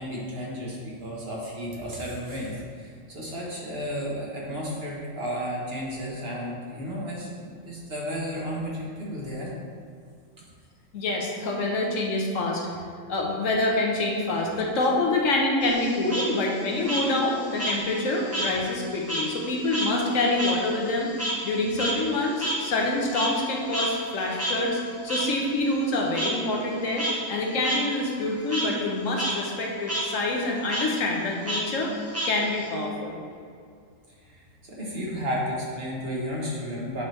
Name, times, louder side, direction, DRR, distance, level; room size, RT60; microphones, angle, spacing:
voice 1, 0.0-9.5 10.4-10.5 34.2-34.4 34.7-37.0, equal, 50° right, -4 dB, 1.4 m, -33 dB
voice 2, 10.9-12.6 13.1-24.8 25.0-31.9 32.2-33.2, left 2 dB, 85° left, -1 dB, 1.3 m, -26 dB
Frog, 15.6-18.5 18.8-23.5 23.7-23.9 24.4-24.5 25.1-25.2 26.1-26.3 26.8-27.1 27.6-27.8 28.1-28.6 29.0-29.3 29.6-30.0 30.7-30.8 31.5-32.7, right 1 dB, 15° right, 0.6 m, -30 dB
7.7 x 4.5 x 3.2 m, 2.2 s
omnidirectional pair, 1.3 m